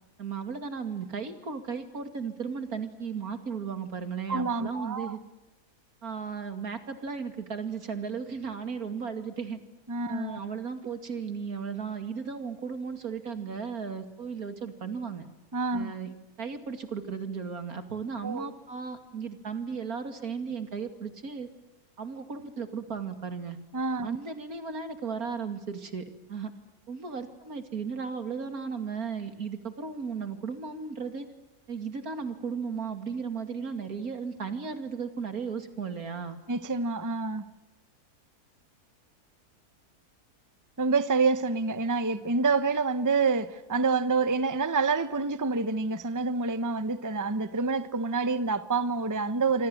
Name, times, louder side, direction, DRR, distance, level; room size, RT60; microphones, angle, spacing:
voice 1, 0.2-5.2 6.0-9.6 10.1-15.3 15.7-21.5 22.0-23.6 24.0-26.5 26.9-31.3 31.7-36.4, right 5 dB, 75° right, 2.9 m, -35 dB
voice 2, 4.3-5.2 9.9-10.4 15.5-15.9 18.2-18.5 23.7-24.2 36.5-37.5 40.8-49.7, right 4 dB, 15° right, 0.8 m, -27 dB
27.5 x 25.5 x 7.9 m
omnidirectional pair, 1.6 m